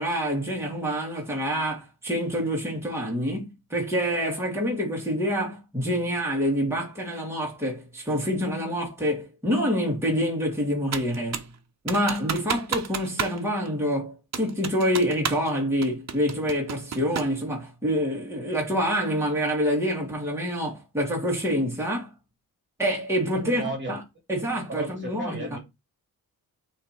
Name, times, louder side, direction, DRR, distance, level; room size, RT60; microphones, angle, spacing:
voice 1, 0.0-11.5 11.8-22.1 22.8-23.6 23.9-24.0 24.3-25.5, equal, 5° right, 2.6 m, -27 dB
Computer keyboard, 10.9-11.5 11.9-13.4 13.6-13.7 14.3-15.5 15.8-17.4, right 7 dB, 45° right, 1.1 m, -31 dB
voice 2, 23.4-24.0 24.7-25.6, right 2 dB, 30° right, 2.7 m, -34 dB
7.4 x 3.3 x 4.5 m
cardioid pair, 100°, 36 cm